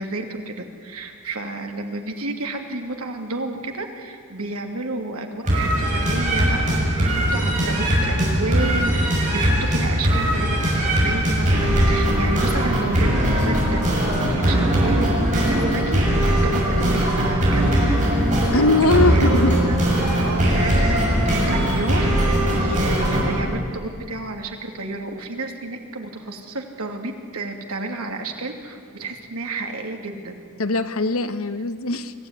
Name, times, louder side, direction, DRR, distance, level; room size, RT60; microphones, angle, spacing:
voice 1, 0.0-13.8 14.3-16.0 16.4-17.8 18.4-19.8 20.2-30.4, right 2 dB, 75° right, 3 dB, 2.8 m, -31 dB
sound 1, 5.5-23.4, equal, 35° right, 6.9 m, -20 dB
voice 2, 18.5-19.6 30.6-32.1, left 2 dB, 70° left, 11 dB, 1.1 m, -21 dB
Motorcycle / Idling, 18.8-20.3, equal, 10° right, 3.9 m, -39 dB
25.0 x 16.0 x 9.8 m, 2.3 s
head